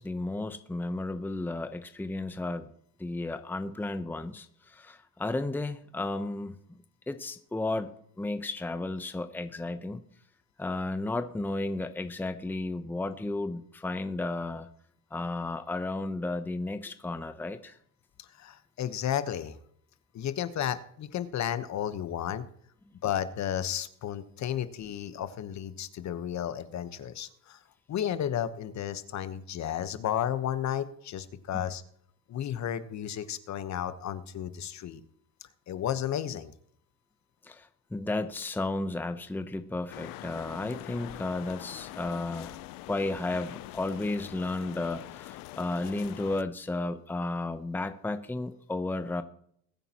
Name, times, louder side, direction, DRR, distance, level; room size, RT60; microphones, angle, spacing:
voice 1, 0.0-2.7 3.0-6.6 7.1-7.9 8.2-10.0 10.6-14.7 15.1-17.8 31.5-31.6 37.4-42.6 42.9-49.2, left 2 dB, 5° left, 9 dB, 0.8 m, -33 dB
voice 2, 18.2-19.6 20.1-22.4 23.0-27.6 27.9-31.8 32.3-35.0 35.7-36.5, left 10 dB, 50° left, 12 dB, 1.2 m, -33 dB
sound 1, 39.9-46.4, left 17 dB, 65° left, 0.6 m, -44 dB
21.5 x 9.0 x 3.0 m, 0.65 s
supercardioid pair, 85°, 37 cm